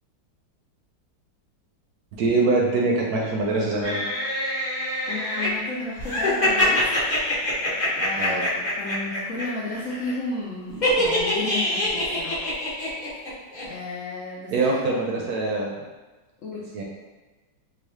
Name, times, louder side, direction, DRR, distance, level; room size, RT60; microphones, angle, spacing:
voice 1, 2.2-4.0 8.2-8.4 14.5-15.8 16.7-16.8, right 3 dB, 70° right, -1 dB, 1.0 m, -23 dB
sound 1, 3.8-5.5 6.0-9.4 9.7-10.1 10.8-13.3 13.5-13.6, left 1 dB, 35° left, 0.7 m, -25 dB
voice 2, 5.1-6.9 8.0-12.5 13.6-15.0 16.4-16.7, left 3 dB, 75° left, -5 dB, 0.7 m, -33 dB
3.8 x 2.8 x 3.1 m, 1.2 s
omnidirectional pair, 2.0 m